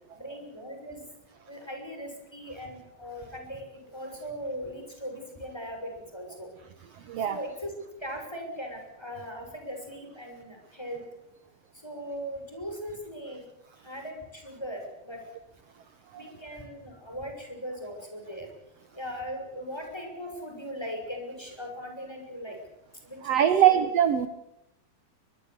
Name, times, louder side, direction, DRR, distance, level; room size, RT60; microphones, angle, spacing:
voice 1, 0.2-1.0 1.5-6.5 7.3-7.7 8.0-11.0 11.8-13.4 13.8-15.2 16.1-18.5 19.0-22.6 23.1-23.8, equal, 5° left, 3 dB, 6.3 m, -39 dB
voice 2, 23.2-24.3, right 10 dB, 65° right, 11 dB, 1.6 m, -22 dB
23.0 x 22.0 x 8.2 m, 0.83 s
omnidirectional pair, 4.2 m